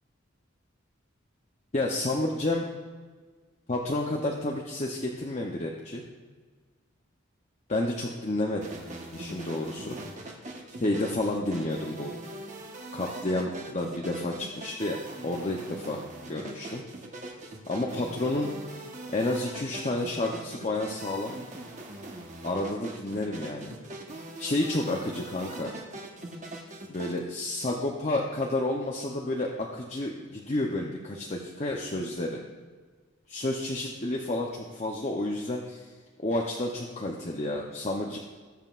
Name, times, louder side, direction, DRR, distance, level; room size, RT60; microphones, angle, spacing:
voice 1, 1.7-2.7 3.7-6.0 7.7-8.7 9.1-10.0 10.8-12.2 12.9-16.0 16.3-16.8 17.7-18.5 19.1-21.3 22.4-23.8 24.4-25.7 26.9-32.4 33.3-35.8 36.2-38.2, left 1 dB, 35° left, -1 dB, 0.7 m, -30 dB
sound 1, 8.6-27.2, right 2 dB, 35° right, 1.2 m, -42 dB
19.0 x 7.4 x 2.5 m, 1.5 s
head